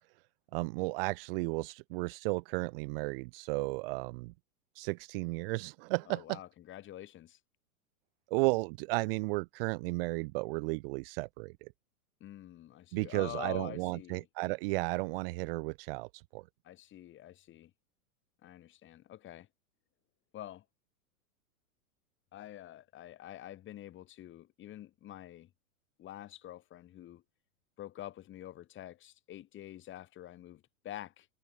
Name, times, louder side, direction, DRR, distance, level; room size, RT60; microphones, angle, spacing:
voice 1, 0.5-4.3 4.8-6.4 8.3-11.7 12.9-16.4, right 25 dB, 40° right, 0.8 m, -34 dB
voice 2, 6.1-7.4 12.2-14.2 16.6-17.7 18.4-19.5 20.3-20.6 22.3-25.5 26.0-27.2 27.8-31.3, left 13 dB, 25° left, 4.4 m, -47 dB
hypercardioid pair, 140°, 44 cm